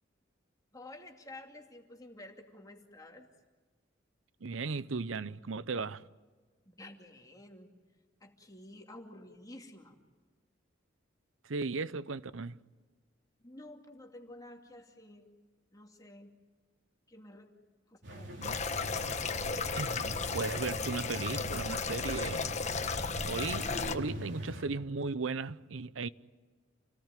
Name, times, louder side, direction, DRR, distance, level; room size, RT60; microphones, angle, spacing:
voice 1, 0.7-3.3 6.7-7.7 8.2-10.0 13.4-15.3 15.7-16.3 17.1-17.5 17.9-18.6, left 1 dB, 20° left, 2.5 m, -51 dB
voice 2, 4.4-6.0 11.4-12.6 18.4-18.6 19.8-22.5 23.3-26.1, right 4 dB, 90° right, 0.8 m, -36 dB
sound 1, 18.0-24.6, right 1 dB, 65° right, 5.1 m, -43 dB
sound 2, 18.4-24.0, left 4 dB, 35° left, 1.3 m, -34 dB
28.5 x 18.5 x 9.2 m
head